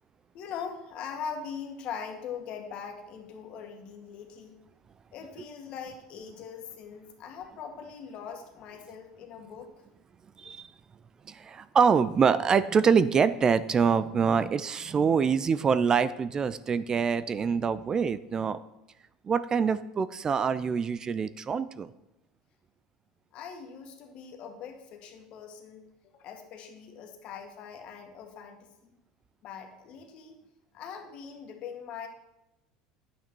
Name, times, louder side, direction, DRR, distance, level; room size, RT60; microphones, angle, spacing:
voice 1, 0.3-4.6 5.1-9.7 23.3-29.0 29.4-30.4 30.7-32.1, left 7 dB, 55° left, 4 dB, 1.9 m, -41 dB
voice 2, 10.4-10.7 11.3-18.6 19.2-21.9, right 6 dB, 30° right, 15 dB, 0.5 m, -25 dB
9.9 x 9.0 x 4.5 m, 0.93 s
supercardioid pair, 95°, 2 cm